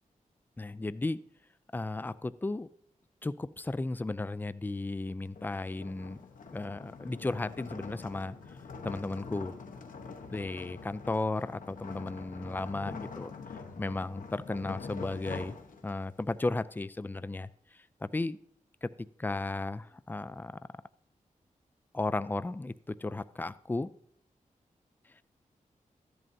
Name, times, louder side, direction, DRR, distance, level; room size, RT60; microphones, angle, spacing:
voice 1, 0.6-1.2 1.7-2.7 3.2-6.2 6.5-8.6 8.8-9.6 10.3-13.3 13.8-15.5 15.8-18.4 18.8-18.9 19.2-20.5 21.9-23.9, left 2 dB, 15° left, 16 dB, 0.4 m, -35 dB
sound 1, 5.3-16.2, left 4 dB, 90° left, 1.0 m, -45 dB
13.5 x 11.0 x 2.7 m, 0.67 s
cardioid pair, 70°, 14 cm